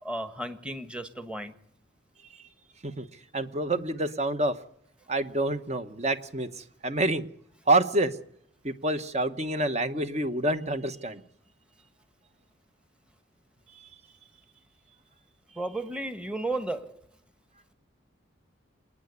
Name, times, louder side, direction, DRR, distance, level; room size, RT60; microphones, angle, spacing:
voice 1, 0.0-1.6 15.5-17.0, right 2 dB, 5° right, 9 dB, 1.3 m, -34 dB
voice 2, 3.3-4.5 5.1-7.3 7.7-8.1 8.6-11.2, right 2 dB, 30° right, 10 dB, 1.1 m, -27 dB
27.5 x 9.8 x 9.6 m, 0.69 s
head